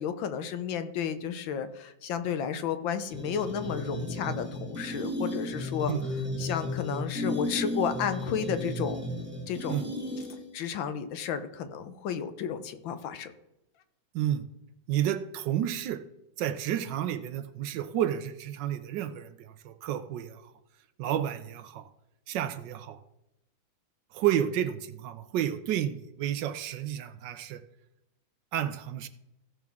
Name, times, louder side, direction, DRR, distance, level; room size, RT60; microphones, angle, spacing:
voice 1, 0.0-5.9 6.4-9.0 9.5-9.9 10.5-13.3, left 7 dB, 80° left, 10 dB, 1.5 m, -32 dB
sound 1, 3.1-10.6, left 1 dB, 5° right, 1.2 m, -34 dB
voice 2, 14.1-14.5 14.9-16.0 16.4-20.4 21.0-21.9 22.3-23.0 24.1-27.6 28.5-29.1, right 11 dB, 75° right, 12 dB, 1.2 m, -31 dB
15.5 x 6.1 x 3.6 m, 0.90 s
omnidirectional pair, 2.1 m